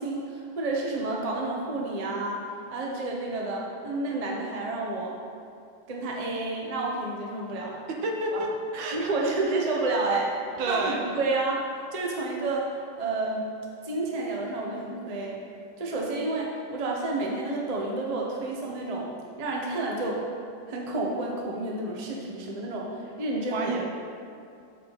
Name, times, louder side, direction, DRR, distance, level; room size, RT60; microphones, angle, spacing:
voice 1, 0.0-2.4 2.7-5.1 5.9-7.8 8.3-8.4 8.9-10.3 10.7-11.6 11.9-12.6 13.0-13.5 13.8-15.4 15.8-19.1 19.4-20.2 20.7-22.9 23.2-23.7, right 2 dB, 30° right, -2 dB, 0.8 m, -30 dB
voice 2, 8.0-8.5 8.7-9.6 10.6-11.0 23.5-23.8, right 2 dB, 75° right, 0 dB, 1.7 m, -31 dB
7.9 x 7.0 x 4.1 m, 2.5 s
omnidirectional pair, 2.1 m